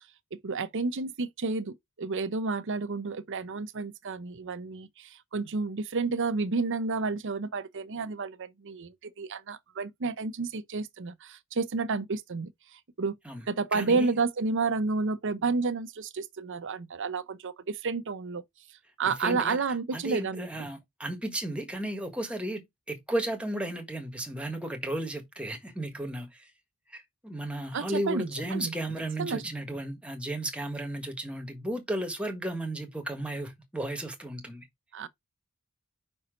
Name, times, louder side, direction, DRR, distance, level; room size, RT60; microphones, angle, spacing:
voice 1, 0.3-13.2 13.5-18.4 19.0-20.5 27.7-28.7 29.2-29.4 34.9-35.1, right 4 dB, 55° right, 0.7 m, -31 dB
voice 2, 13.7-14.1 19.0-19.6 19.9-22.6 22.9-26.5 26.9-34.6, right 1 dB, 5° right, 1.4 m, -34 dB
5.4 x 4.3 x 5.0 m
head